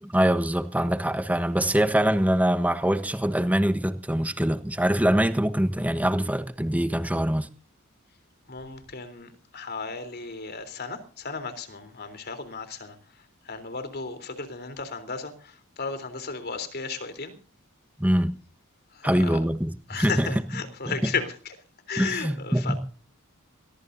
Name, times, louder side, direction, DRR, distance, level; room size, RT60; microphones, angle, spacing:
voice 1, 0.0-7.5 18.0-18.3 19.0-20.3 20.9-21.0 22.0-22.8, right 1 dB, 5° right, 1.3 m, -24 dB
voice 2, 8.5-13.0 13.5-17.4 18.9-19.4 19.9-21.6 21.9-22.8, left 4 dB, 50° left, 3.5 m, -34 dB
22.5 x 22.0 x 2.7 m
head